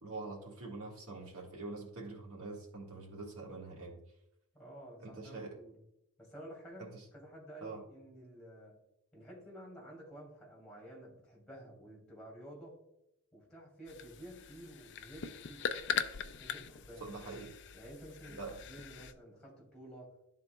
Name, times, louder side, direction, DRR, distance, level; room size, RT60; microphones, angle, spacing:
voice 1, 0.0-4.0 5.0-5.5 6.8-7.0 7.6-7.8 17.0-17.5 18.3-18.5, right 3 dB, 80° right, -1 dB, 1.6 m, -45 dB
voice 2, 4.5-5.8 6.2-8.8 9.1-12.8 13.3-15.7 16.4-17.1 17.7-20.1, right 1 dB, 5° left, -2 dB, 2.5 m, -52 dB
sound 1, 13.9-19.1, left 7 dB, 55° left, 0.4 m, -41 dB
12.0 x 4.0 x 2.2 m, 0.81 s
head